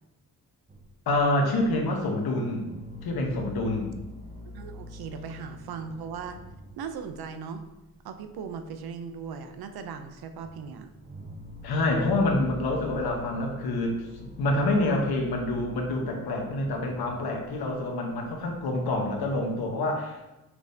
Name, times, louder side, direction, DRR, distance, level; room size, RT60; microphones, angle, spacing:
sound 1, 0.7-2.0 2.3-7.3 7.6-8.0 8.3-8.8 9.1-9.8 10.1-19.7, left 1 dB, 20° right, 0.8 m, -45 dB
voice 1, 1.1-2.7 3.0-3.9 11.6-20.3, left 2 dB, 85° left, 1 dB, 1.0 m, -27 dB
voice 2, 4.5-6.4 6.8-7.6 8.0-10.9, right 6 dB, 85° right, 8 dB, 0.5 m, -38 dB
6.0 x 3.2 x 2.7 m, 1.0 s
cardioid pair, 85°, 36 cm